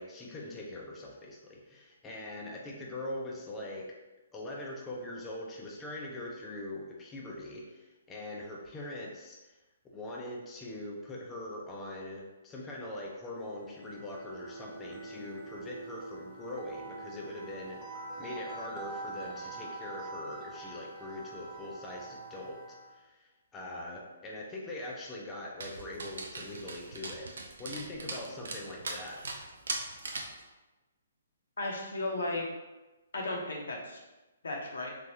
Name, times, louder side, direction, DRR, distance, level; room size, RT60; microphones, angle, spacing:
voice 1, 0.0-3.9 4.3-9.6 9.9-17.8 18.2-22.6 22.9-27.3 27.6-29.3, left 1 dB, 15° left, -3 dB, 0.5 m, -42 dB
sound 1, 13.5-23.0, right 2 dB, 30° right, 0.6 m, -45 dB
Dog, 25.6-30.4, right 3 dB, 75° right, 0.5 m, -40 dB
voice 2, 31.6-32.4 33.1-34.0 34.4-34.9, left 2 dB, 75° left, 0 dB, 0.7 m, -34 dB
3.4 x 2.4 x 2.7 m, 1.1 s
hypercardioid pair, 145°, 0 cm